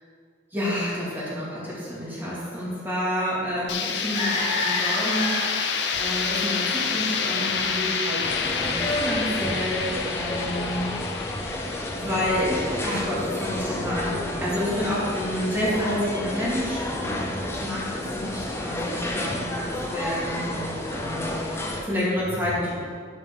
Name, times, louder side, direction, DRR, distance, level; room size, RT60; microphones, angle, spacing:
voice 1, 0.5-10.9 11.1-11.2 11.9-22.7, left 1 dB, 10° right, -8 dB, 2.2 m, -29 dB
sound 1, 3.7-13.5, left 5 dB, 60° left, 0.7 m, -28 dB
sound 2, 3.9-8.8, left 2 dB, 35° left, 1.2 m, -32 dB
sound 3, 8.2-21.8, left 1 dB, 15° left, 0.7 m, -31 dB
11.5 x 4.9 x 3.7 m, 2.1 s
head